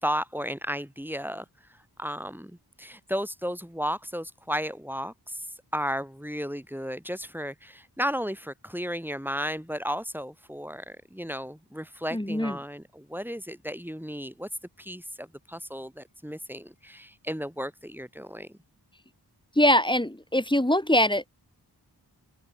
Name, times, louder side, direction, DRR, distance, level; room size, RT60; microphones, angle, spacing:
voice 1, 0.0-1.4 2.0-5.5 5.7-14.5 14.8-18.5, equal, 5° right, 4.2 m, -34 dB
voice 2, 12.1-12.6 19.6-21.4, left 1 dB, 10° left, 3.7 m, -23 dB
open air
cardioid pair, 45°, 42 cm